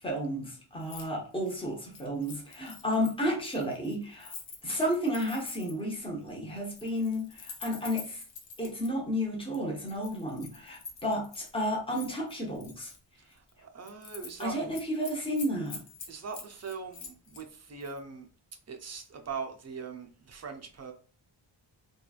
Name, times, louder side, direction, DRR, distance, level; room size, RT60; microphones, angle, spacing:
voice 1, 0.0-4.3 4.6-8.2 8.6-12.9 14.4-15.8, equal, 10° left, -2 dB, 0.8 m, -32 dB
Keys jangling, 0.8-1.1 1.4-5.9 6.6-8.9 9.5-11.5 11.9-13.0 13.4-13.5 13.8-14.5 14.7-17.4 17.8-18.0, left 5 dB, 65° left, 0.7 m, -46 dB
voice 2, 13.2-14.6 16.1-18.3 18.7-20.9, right 5 dB, 35° right, 4 dB, 0.5 m, -41 dB
3.0 x 2.4 x 2.3 m, 0.39 s
wide cardioid pair, 125°, 49 cm